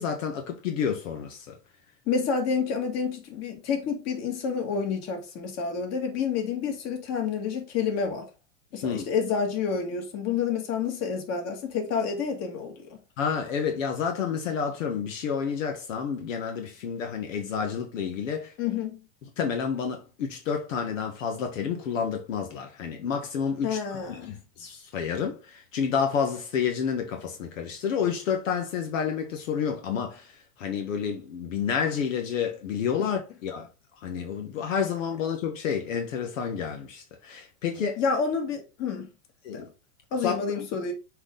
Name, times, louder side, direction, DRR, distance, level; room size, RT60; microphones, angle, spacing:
voice 1, 0.0-1.6 8.8-9.0 13.2-18.5 19.4-23.8 24.0-30.3 30.6-33.7 34.0-38.0 39.4-39.7 40.2-40.3, left 7 dB, 85° left, 1.6 m, -29 dB
voice 2, 2.1-8.2 8.7-13.0 18.6-19.0 23.6-24.4 33.0-33.1 38.0-39.1 39.5-39.6 40.1-40.9, left 6 dB, 40° left, 2.4 m, -29 dB
6.3 x 4.8 x 3.9 m
supercardioid pair, 135°, 38 cm